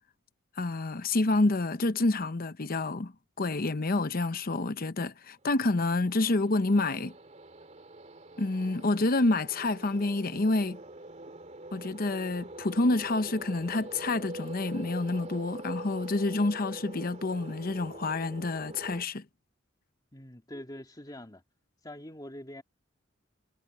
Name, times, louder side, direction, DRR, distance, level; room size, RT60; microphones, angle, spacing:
voice 1, 0.6-3.1 3.4-7.1 8.4-10.8 11.7-19.2, left 2 dB, 50° left, 0.8 m, -28 dB
sound 1, 5.5-19.0, right 2 dB, 35° right, 2.8 m, -45 dB
voice 2, 20.1-21.4 21.8-22.6, left 1 dB, 20° left, 2.4 m, -44 dB
head